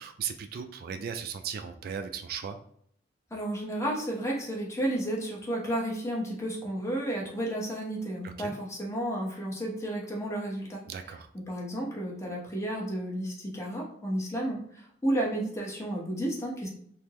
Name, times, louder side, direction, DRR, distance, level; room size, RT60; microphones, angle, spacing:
voice 1, 0.0-2.6 8.2-8.5 10.9-11.3, right 7 dB, 55° right, 8 dB, 0.3 m, -37 dB
voice 2, 3.3-10.8 11.3-16.7, right 1 dB, 15° left, -3 dB, 1.0 m, -32 dB
3.6 x 2.7 x 2.9 m, 0.67 s
head